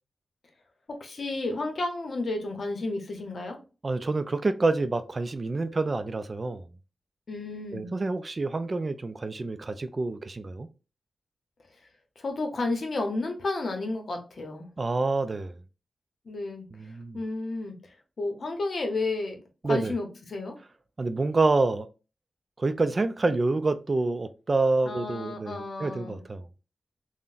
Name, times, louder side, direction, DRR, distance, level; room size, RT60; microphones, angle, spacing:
voice 1, 0.9-3.6 7.3-7.9 12.2-14.7 16.2-20.6 24.8-26.2, left 2 dB, 65° left, 0.8 m, -32 dB
voice 2, 3.8-6.6 7.7-10.7 14.8-15.6 16.7-17.2 19.6-19.9 21.0-21.9 22.6-26.4, right 3 dB, 40° right, 0.3 m, -27 dB
3.6 x 2.1 x 2.5 m
wide cardioid pair, 85°, 0 cm